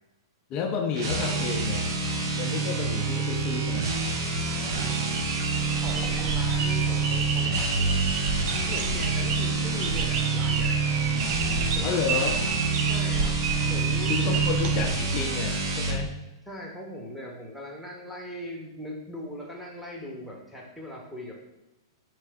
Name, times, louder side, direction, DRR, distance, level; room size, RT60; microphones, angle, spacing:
voice 1, 0.5-1.9 2.4-4.1 11.8-12.4 14.1-16.1, left 6 dB, 35° left, 3 dB, 0.5 m, -31 dB
sound 1, 0.9-16.1, right 4 dB, 60° right, 0.8 m, -27 dB
voice 2, 4.4-5.1 5.8-8.3 8.7-10.9 11.7-12.2 12.8-14.4 16.5-21.3, left 1 dB, ahead, -3 dB, 1.0 m, -40 dB
sound 2, 4.6-15.5, right 5 dB, 40° right, 0.5 m, -32 dB
4.4 x 3.1 x 3.5 m, 1.0 s
hypercardioid pair, 135°, 2 cm